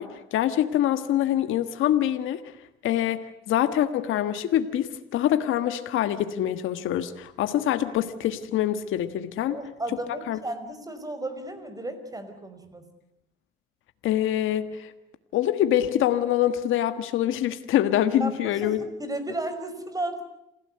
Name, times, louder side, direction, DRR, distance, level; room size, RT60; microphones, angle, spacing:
voice 1, 0.0-2.4 2.8-9.6 10.3-10.4 14.0-14.9 15.3-18.8, left 11 dB, 85° left, 10 dB, 1.5 m, -25 dB
voice 2, 9.5-12.8 18.2-20.2, right 2 dB, 20° right, 9 dB, 5.2 m, -34 dB
28.0 x 16.5 x 9.7 m, 0.87 s
cardioid pair, 90°, 20 cm